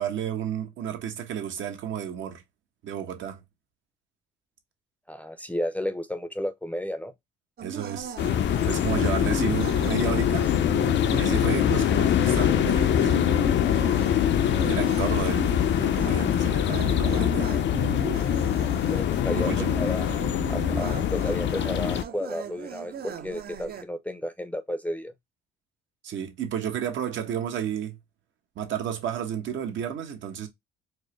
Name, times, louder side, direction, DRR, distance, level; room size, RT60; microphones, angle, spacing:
voice 1, 0.0-2.4 2.8-3.4 7.6-8.2 8.6-10.5 11.1-13.5 14.7-17.5 19.4-19.7 26.0-28.0 28.6-30.5, right 9 dB, 65° right, 1.0 m, -32 dB
voice 2, 5.1-7.1 18.9-20.2 20.5-25.1, left 1 dB, 5° left, 0.6 m, -32 dB
sound 1, 7.6-23.8, right 7 dB, 50° right, 0.7 m, -38 dB
sound 2, 8.2-22.0, left 10 dB, 60° left, 0.6 m, -24 dB
4.5 x 2.1 x 3.1 m
cardioid pair, 90°, 21 cm